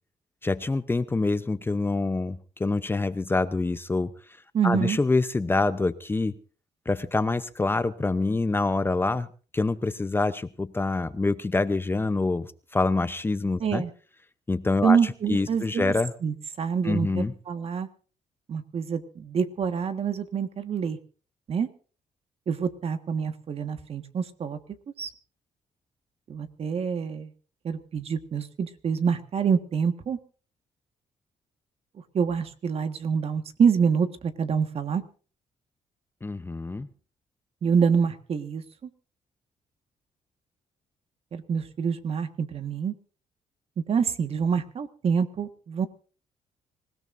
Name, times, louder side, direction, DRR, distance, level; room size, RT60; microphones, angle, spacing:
voice 1, 0.4-4.1 4.6-6.3 6.9-9.3 9.5-13.8 14.5-16.1 16.8-17.3 36.2-36.9, left 3 dB, 15° left, 13 dB, 0.7 m, -26 dB
voice 2, 4.5-5.0 13.6-13.9 14.8-15.9 16.2-17.9 18.5-21.0 21.5-21.7 22.5-24.6 25.0-25.1 26.3-27.3 27.6-30.2 32.1-35.0 37.6-38.6 41.3-42.9 43.9-45.9, right 6 dB, 50° right, 9 dB, 1.6 m, -26 dB
25.5 x 17.0 x 2.6 m, 0.38 s
cardioid pair, 105°, 13 cm